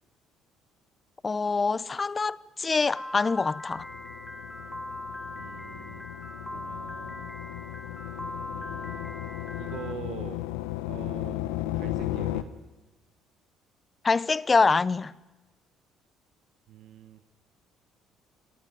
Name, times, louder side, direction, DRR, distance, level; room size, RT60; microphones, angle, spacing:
voice 1, 1.2-3.8 14.0-15.1, left 4 dB, 30° left, 0.7 m, -25 dB
Piano, 3.0-9.9, left 1 dB, 10° left, 4.0 m, -40 dB
sound 1, 3.7-12.4, left 14 dB, 80° left, 1.1 m, -35 dB
voice 2, 5.3-6.1 6.5-7.3 8.5-10.4 10.9-11.4 11.7-12.5 16.7-17.2, right 11 dB, 65° right, 1.1 m, -44 dB
28.0 x 18.5 x 9.2 m
hypercardioid pair, 55°, 0 cm